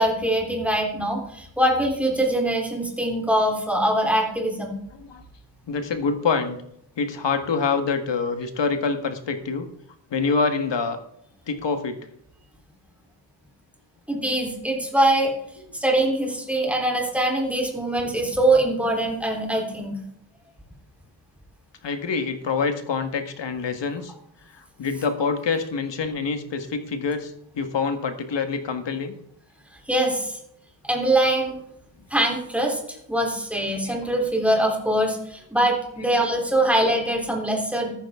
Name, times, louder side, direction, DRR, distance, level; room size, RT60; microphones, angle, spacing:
voice 1, 0.0-4.8 14.1-15.3 15.7-20.0 29.9-30.4 30.8-31.6 32.1-32.8 33.1-37.9, right 1 dB, 5° right, 0 dB, 3.5 m, -23 dB
voice 2, 5.7-6.6 7.0-9.7 10.1-11.0 11.5-12.0 21.8-24.1 24.8-29.1 33.9-34.1 36.6-36.7, left 5 dB, 80° left, 7 dB, 1.7 m, -26 dB
14.5 x 13.0 x 3.7 m, 0.74 s
wide cardioid pair, 140°, 43 cm